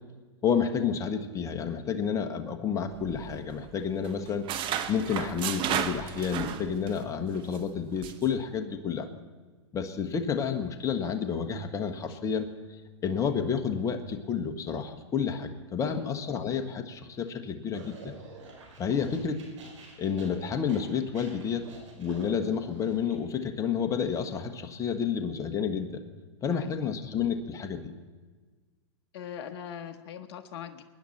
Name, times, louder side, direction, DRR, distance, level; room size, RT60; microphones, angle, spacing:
voice 1, 0.4-9.1 9.7-12.5 13.0-18.1 18.8-19.4 20.0-21.6 22.0-26.0 26.4-27.9, left 7 dB, 20° left, 6 dB, 1.3 m, -30 dB
sound 1, 2.9-3.8 4.0-7.0 7.3-7.6 8.0-8.3, right 9 dB, 30° right, 1.0 m, -33 dB
voice 2, 15.8-16.4 26.5-26.8 29.1-30.8, left 9 dB, 50° left, 6 dB, 1.0 m, -41 dB
sound 2, 17.7-23.1, right 4 dB, 75° right, 4.8 m, -48 dB
23.0 x 10.5 x 4.3 m, 1.4 s
hypercardioid pair, 125°, 16 cm